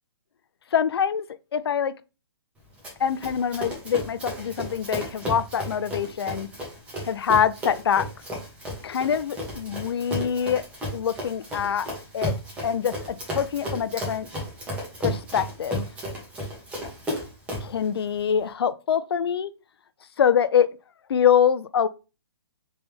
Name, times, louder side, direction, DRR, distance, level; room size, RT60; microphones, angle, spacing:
voice 1, 0.7-1.3 1.5-1.9 3.0-6.5 7.0-8.1 8.8-10.6 10.9-11.9 12.1-12.3 12.6-14.3 15.0-15.9 17.6-19.5 20.2-20.8 21.1-21.9, left 8 dB, 70° left, 0.4 m, -24 dB
Run, 2.8-17.8, equal, 10° right, 1.0 m, -34 dB
3.4 x 3.0 x 3.3 m
hypercardioid pair, 145°, 13 cm